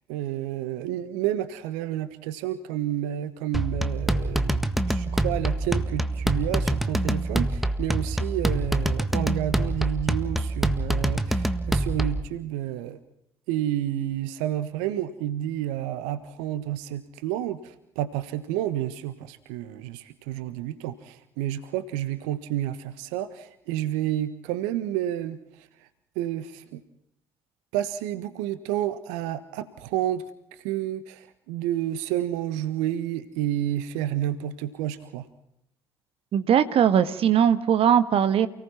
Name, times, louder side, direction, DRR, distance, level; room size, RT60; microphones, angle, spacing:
voice 1, 0.1-13.0 13.5-25.7 26.1-26.8 27.7-30.2 30.5-35.2, right 12 dB, 70° right, 13 dB, 1.4 m, -30 dB
sound 1, 3.5-12.3, right 1 dB, ahead, 1.7 m, -26 dB
voice 2, 36.3-38.5, right 9 dB, 50° right, 12 dB, 1.6 m, -20 dB
29.5 x 18.5 x 5.8 m, 0.77 s
figure-of-eight pair, 55°, 13 cm